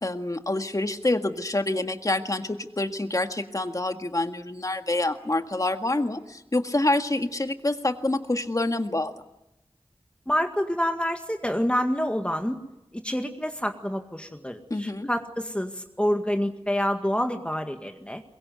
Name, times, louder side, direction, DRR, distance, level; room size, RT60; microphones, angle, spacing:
voice 1, 0.0-9.1 14.7-15.1, left 2 dB, 35° left, 7 dB, 1.8 m, -27 dB
voice 2, 10.3-12.6 12.9-18.2, equal, 10° left, 5 dB, 1.9 m, -27 dB
23.0 x 22.0 x 9.5 m, 0.90 s
wide cardioid pair, 60°, 10 cm